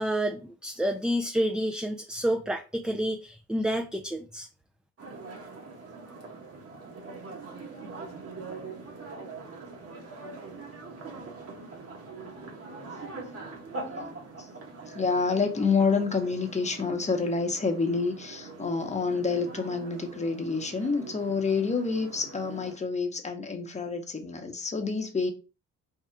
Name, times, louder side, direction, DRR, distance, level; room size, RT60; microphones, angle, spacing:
voice 1, 0.0-4.5, equal, 5° right, 0.4 m, -29 dB
sound 1, 5.0-22.8, right 3 dB, 50° right, 1.3 m, -43 dB
voice 2, 12.7-13.4 13.8-14.1 14.9-25.3, left 4 dB, 25° left, 0.9 m, -28 dB
3.7 x 2.3 x 4.4 m
cardioid pair, 90°, 30 cm